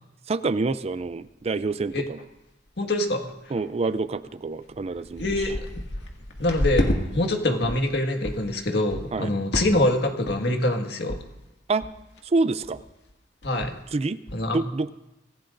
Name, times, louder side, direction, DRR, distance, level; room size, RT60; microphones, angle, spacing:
voice 1, 0.3-2.2 3.5-5.5 9.1-9.3 11.7-11.9 12.2-12.8 13.9-14.2 14.5-14.9, right 3 dB, 35° right, 14 dB, 0.4 m, -27 dB
sound 1, 1.1-1.2 1.6-1.7 1.9-2.4 2.7-3.0 3.6-3.7 4.3-4.4 4.7-7.0 7.4-7.9 8.2-8.5 8.9-9.2 9.5-9.9 10.3-10.6 11.1-11.2 11.5-11.6 11.8-12.2 12.6-12.8 13.1-13.2 13.4-13.8 14.3-14.4, equal, 90° left, 2.1 m, -30 dB
voice 2, 2.8-3.3 5.2-5.5 6.4-11.2 13.4-13.8 14.3-14.6, left 1 dB, 70° left, 3 dB, 1.8 m, -24 dB
24.5 x 15.5 x 2.6 m, 0.94 s
head